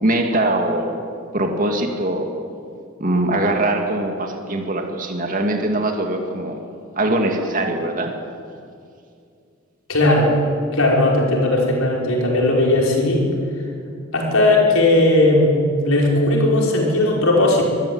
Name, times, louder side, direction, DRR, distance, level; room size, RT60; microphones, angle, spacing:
voice 1, 0.0-1.0 1.3-2.3 3.0-6.6 7.0-8.1, right 1 dB, 40° right, 3 dB, 2.4 m, -22 dB
voice 2, 9.9-10.3 10.7-13.2 14.1-17.6, left 2 dB, 85° left, -2 dB, 5.5 m, -17 dB
24.5 x 14.5 x 9.6 m, 2.4 s
head